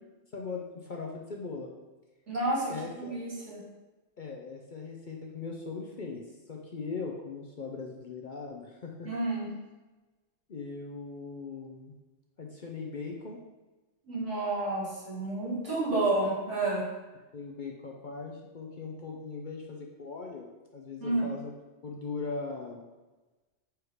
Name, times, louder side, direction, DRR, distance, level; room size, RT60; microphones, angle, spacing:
voice 1, 0.3-1.7 2.7-3.1 4.2-9.1 10.5-11.9 12.4-13.4 17.3-21.5 21.8-22.8, left 4 dB, 50° left, 0 dB, 0.7 m, -39 dB
voice 2, 2.3-3.6 9.0-9.5 14.1-16.9 21.0-21.3, right 2 dB, 75° right, -7 dB, 2.6 m, -30 dB
4.8 x 4.7 x 4.8 m, 1.2 s
omnidirectional pair, 1.2 m